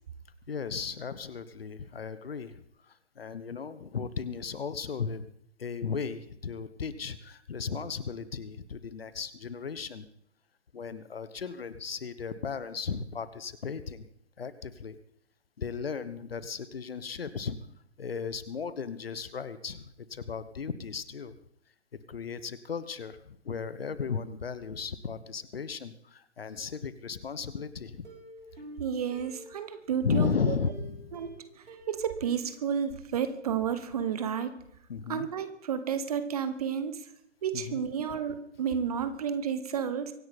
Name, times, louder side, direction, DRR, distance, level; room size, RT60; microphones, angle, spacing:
voice 1, 0.5-5.3 5.6-10.1 10.7-14.1 14.4-15.0 15.6-17.6 18.0-21.4 22.1-28.1 30.0-31.2 34.9-35.3 37.5-37.8 38.1-38.2, left 5 dB, 55° left, 14 dB, 1.2 m, -35 dB
Plucked string instrument, 28.0-30.0 30.7-33.4 33.8-33.9 34.2-34.3, equal, 70° right, 6.7 m, -50 dB
voice 2, 28.8-30.5 31.1-34.6 35.1-37.0 37.4-40.1, right 7 dB, 35° right, 11 dB, 1.2 m, -31 dB
24.0 x 10.5 x 4.3 m, 0.69 s
figure-of-eight pair, 135°, 35 cm